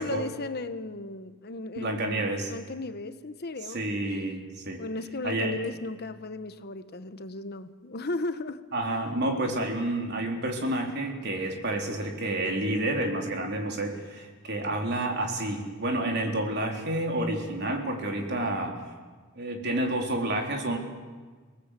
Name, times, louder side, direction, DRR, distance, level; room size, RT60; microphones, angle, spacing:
voice 1, 0.0-4.2 4.8-9.0, left 2 dB, 50° left, 11 dB, 1.0 m, -36 dB
voice 2, 1.8-2.5 3.7-4.8 5.2-5.6 8.7-18.8 19.4-20.8, right 1 dB, 50° right, 2 dB, 3.7 m, -29 dB
29.0 x 19.0 x 8.3 m, 1.4 s
head